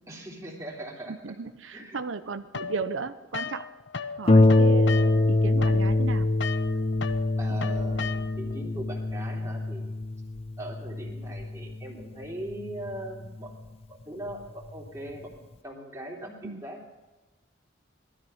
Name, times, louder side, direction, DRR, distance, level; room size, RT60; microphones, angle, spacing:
voice 1, 0.1-1.1 1.7-2.0 7.4-9.8 10.6-13.5 13.9-16.9, right 1 dB, 15° right, -1 dB, 3.1 m, -40 dB
voice 2, 1.1-3.7 4.2-6.3 7.5-7.6 16.4-16.7, right 4 dB, 85° right, 10 dB, 0.7 m, -35 dB
sound 1, 2.5-4.2 4.5-8.6, left 5 dB, 65° left, 1.0 m, -36 dB
Harp, 4.3-13.4 14.3-14.4 14.9-15.0, left 2 dB, 30° left, 0.5 m, -24 dB
18.5 x 12.5 x 5.6 m, 1.2 s
head